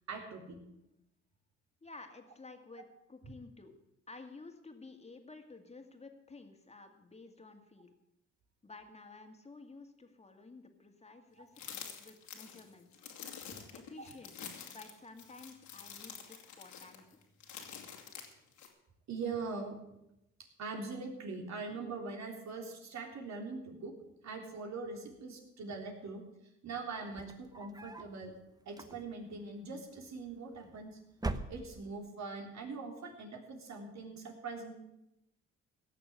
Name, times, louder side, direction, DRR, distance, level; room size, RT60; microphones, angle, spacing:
voice 1, 0.1-0.6 3.2-3.4 14.0-14.1 19.1-19.8 20.4-23.9 24.2-26.2 26.6-28.4 28.7-31.0 31.5-34.7, right 4 dB, 65° right, 1 dB, 3.5 m, -42 dB
voice 2, 1.8-3.7 4.1-7.9 8.6-12.9 13.5-14.3 14.7-17.2, left 3 dB, 20° left, 5 dB, 2.2 m, -53 dB
sound 1, 11.6-18.7, left 7 dB, 75° left, 2.7 m, -48 dB
sound 2, 27.0-28.2 28.7-29.3 30.3-30.8 31.1-32.1, right 2 dB, 15° right, 1.0 m, -41 dB
17.0 x 6.8 x 8.1 m, 0.88 s
cardioid pair, 90°, 30 cm